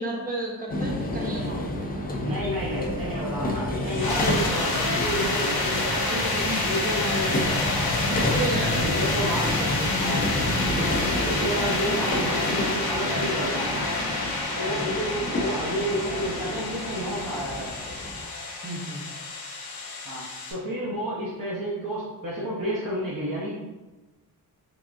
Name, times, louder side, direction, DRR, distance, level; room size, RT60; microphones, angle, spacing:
voice 1, 0.0-1.6 7.0-7.3 8.0-9.9 14.6-14.9 18.6-19.0, right 1 dB, 20° right, -2 dB, 0.7 m, -33 dB
sound 1, 0.7-18.3, left 1 dB, 25° left, 0.4 m, -30 dB
voice 2, 2.2-7.9 8.8-9.5 9.9-10.3 11.0-13.9 14.6-17.8 20.0-20.2 20.5-23.6, equal, 60° right, -6 dB, 0.8 m, -30 dB
sound 2, 3.9-20.5, left 3 dB, 70° left, 0.9 m, -29 dB
3.7 x 3.4 x 2.5 m, 1.1 s
wide cardioid pair, 150°, 38 cm